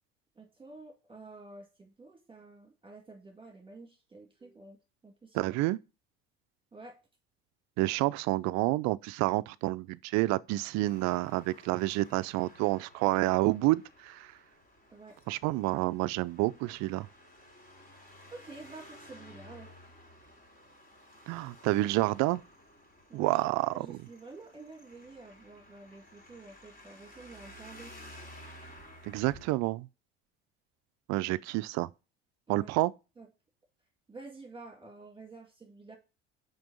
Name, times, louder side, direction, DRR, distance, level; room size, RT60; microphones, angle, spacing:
voice 1, 0.4-5.4 6.7-7.0 14.9-15.2 18.3-19.7 23.1-23.4 23.7-27.9 32.5-32.7 33.2-33.3 34.1-36.0, right 3 dB, 15° right, 2.1 m, -50 dB
voice 2, 5.3-5.8 7.8-14.3 15.3-17.1 21.3-22.4 23.1-24.0 29.0-29.9 31.1-31.9 32.5-32.9, right 19 dB, 65° right, 0.5 m, -29 dB
Traffic noise roadway noise, 10.9-29.6, equal, 30° left, 3.7 m, -54 dB
6.0 x 5.2 x 5.3 m
hypercardioid pair, 70°, 30 cm